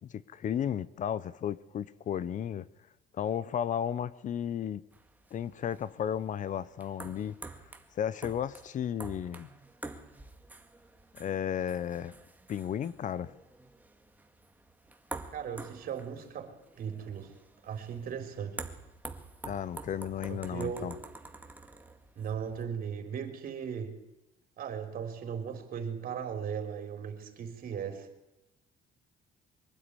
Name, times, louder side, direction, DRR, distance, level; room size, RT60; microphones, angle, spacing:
voice 1, 0.1-2.7 3.1-4.8 5.3-7.4 7.9-9.5 11.2-12.1 12.5-13.3 19.5-20.9, left 9 dB, 50° left, 0.8 m, -34 dB
sound 1, 4.9-22.7, right 2 dB, 10° right, 2.0 m, -48 dB
voice 2, 15.3-17.3 17.6-18.6 20.3-20.9 22.2-24.0 24.6-28.1, right 7 dB, 60° right, 4.2 m, -37 dB
23.5 x 12.0 x 9.9 m
cardioid pair, 110°, 17 cm